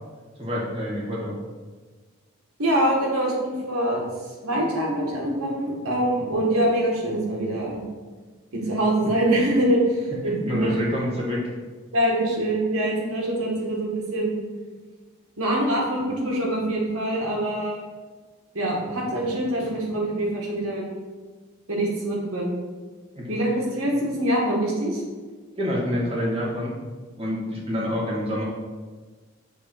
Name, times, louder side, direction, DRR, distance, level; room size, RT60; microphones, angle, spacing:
voice 1, 0.4-1.3 10.2-11.4 23.2-23.3 25.6-26.7 27.2-28.4, equal, 25° right, -5 dB, 1.8 m, -27 dB
voice 2, 2.6-4.0 4.4-7.8 8.5-10.7 11.9-14.4 15.4-17.8 18.5-20.9 21.7-22.6 23.3-25.0, right 1 dB, 80° right, -3 dB, 1.9 m, -24 dB
7.0 x 3.6 x 5.8 m, 1.4 s
head